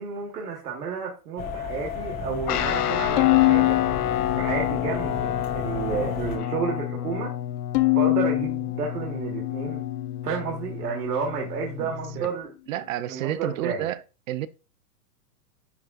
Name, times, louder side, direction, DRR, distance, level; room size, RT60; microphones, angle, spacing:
voice 1, 0.0-3.8 4.4-7.3 7.9-9.8 10.2-12.5 13.1-13.9, right 5 dB, 80° right, 1.9 m, -31 dB
sound 1, 1.4-6.4, left 4 dB, 20° left, 1.5 m, -34 dB
Guitar, 2.5-12.3, left 11 dB, 75° left, 1.1 m, -30 dB
Bowed string instrument, 3.2-5.5 6.0-6.8 7.7-10.3, left 23 dB, 35° left, 0.5 m, -25 dB
voice 2, 12.7-14.0 14.3-14.5, right 13 dB, 60° right, 0.6 m, -30 dB
10.5 x 3.7 x 2.5 m
hypercardioid pair, 150°, 46 cm